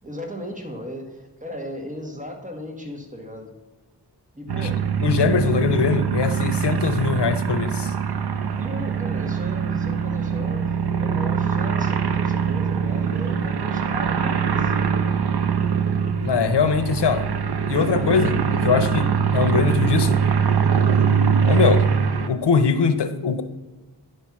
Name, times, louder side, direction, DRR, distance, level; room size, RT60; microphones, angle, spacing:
voice 1, 0.0-3.5 4.3-4.9 8.5-10.7 11.0-14.7, equal, 20° right, 2 dB, 1.7 m, -36 dB
sound 1, 4.5-22.3, right 7 dB, 70° right, 0.7 m, -22 dB
voice 2, 5.0-7.9 16.2-17.3 17.7-18.4 18.6-20.2 21.4-21.8 22.3-23.4, left 6 dB, 90° left, 11 dB, 0.7 m, -21 dB
10.0 x 4.5 x 6.0 m, 1.2 s
wide cardioid pair, 60°, 40 cm